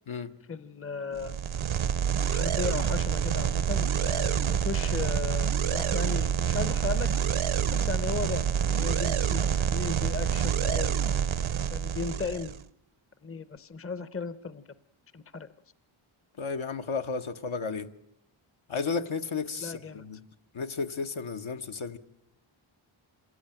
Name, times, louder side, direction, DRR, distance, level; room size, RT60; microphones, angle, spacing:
voice 1, 0.5-1.4 2.3-7.1 7.7-11.0 11.6-12.5 13.2-14.6 15.1-15.5 19.6-20.0, left 5 dB, 25° left, 0.8 m, -36 dB
sound 1, 1.2-12.6, right 8 dB, 70° right, 0.8 m, -27 dB
voice 2, 16.4-17.9 18.7-20.2 20.5-22.0, left 5 dB, 70° left, 1.2 m, -33 dB
26.0 x 16.5 x 9.0 m
wide cardioid pair, 90°, 50 cm